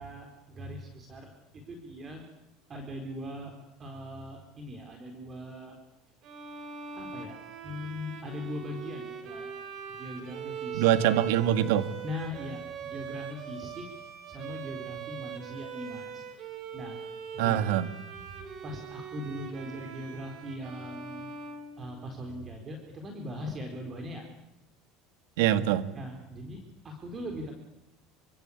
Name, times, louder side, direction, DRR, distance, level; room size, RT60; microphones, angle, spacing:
voice 1, 0.0-2.2 2.7-3.5 3.8-5.8 7.0-7.4 7.6-9.6 9.9-10.9 12.0-13.9 14.3-16.3 16.7-17.0 17.3-17.8 18.6-21.3 21.8-24.2 25.9-27.5, left 1 dB, 25° right, 3 dB, 4.0 m, -40 dB
Bowed string instrument, 6.2-22.3, right 7 dB, 45° right, 4.6 m, -41 dB
voice 2, 10.7-11.9 17.4-17.9 25.4-25.9, right 11 dB, 85° right, 11 dB, 1.9 m, -24 dB
27.0 x 25.5 x 8.5 m, 0.92 s
cardioid pair, 145°, 0 cm